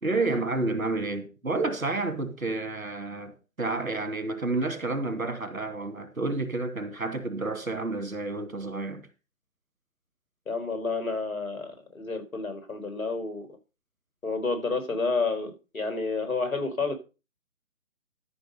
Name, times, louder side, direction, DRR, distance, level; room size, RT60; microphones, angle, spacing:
voice 1, 0.0-9.0, right 3 dB, 90° right, 2.7 m, -30 dB
voice 2, 10.5-13.5 14.2-16.9, left 3 dB, 85° left, 4.3 m, -30 dB
13.0 x 6.0 x 5.4 m
figure-of-eight pair, 145°, 41 cm